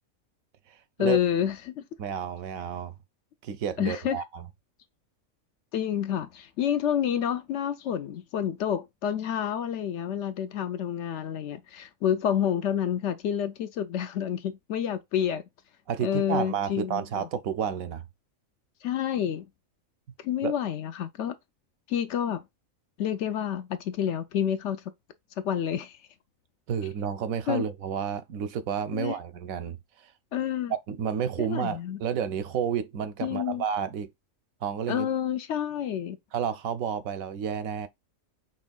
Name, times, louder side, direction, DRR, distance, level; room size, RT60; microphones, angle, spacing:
voice 1, 1.0-1.8 3.8-4.2 5.7-15.4 16.0-17.2 18.8-19.4 20.2-21.3 21.9-22.4 23.0-24.8 25.4-26.0 27.5-27.6 28.9-29.2 30.3-30.7 31.4-32.0 33.2-33.6 34.9-36.2, left 9 dB, 70° left, 0.8 m, -29 dB
voice 2, 2.0-2.9 3.4-4.5 15.9-18.0 20.4-20.5 26.7-29.8 30.9-34.1 34.6-35.1 36.3-37.9, right 7 dB, 85° right, 1.1 m, -30 dB
5.4 x 3.0 x 2.3 m
omnidirectional pair, 1.4 m